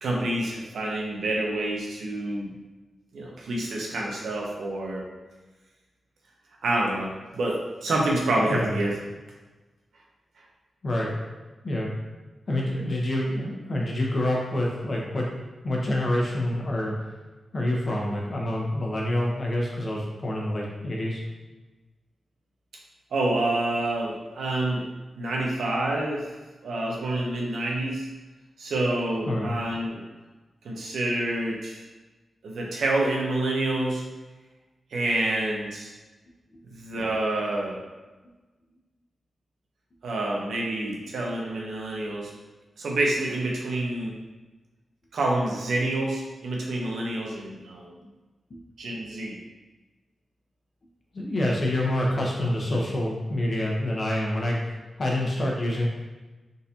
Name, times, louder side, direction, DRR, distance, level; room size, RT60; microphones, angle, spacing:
voice 1, 0.0-2.5 3.1-5.0 6.6-8.9 23.1-24.8 25.2-26.3 26.6-28.1 28.6-30.0 30.6-31.8 32.4-34.0 34.9-35.9 36.7-37.8 40.0-42.3 42.8-44.1 45.1-47.9 48.8-49.4, right 2 dB, 90° right, -2 dB, 0.8 m, -27 dB
voice 2, 10.8-11.1 11.6-11.9 12.5-15.3 15.6-16.9 17.5-21.2 29.3-29.5 48.5-48.6 51.1-55.9, left 1 dB, 45° left, -2 dB, 1.0 m, -27 dB
4.0 x 3.9 x 2.9 m, 1.2 s
wide cardioid pair, 90°, 0 cm